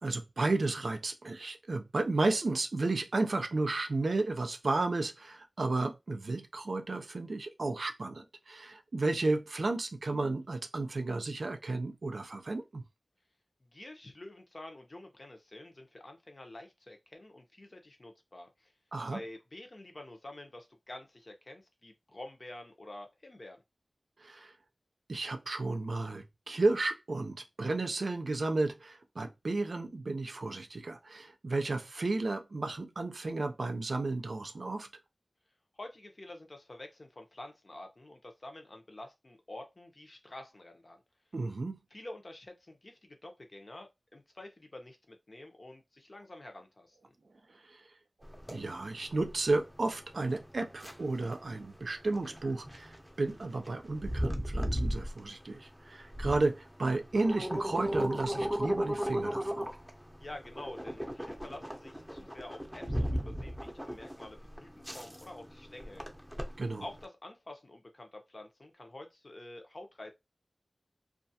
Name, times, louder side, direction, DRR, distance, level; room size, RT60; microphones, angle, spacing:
voice 1, 0.0-12.8 18.9-19.2 24.2-24.5 25.1-34.9 41.3-41.8 47.6-47.8 48.5-59.7 66.6-66.8, right 2 dB, 80° right, 0.4 m, -33 dB
voice 2, 13.6-18.7 19.1-23.6 35.7-41.0 41.9-47.1 60.2-66.0 66.8-70.1, left 1 dB, 50° left, 0.7 m, -48 dB
sound 1, 48.2-67.0, equal, 5° right, 0.6 m, -37 dB
2.4 x 2.3 x 2.7 m
wide cardioid pair, 55°, 0 cm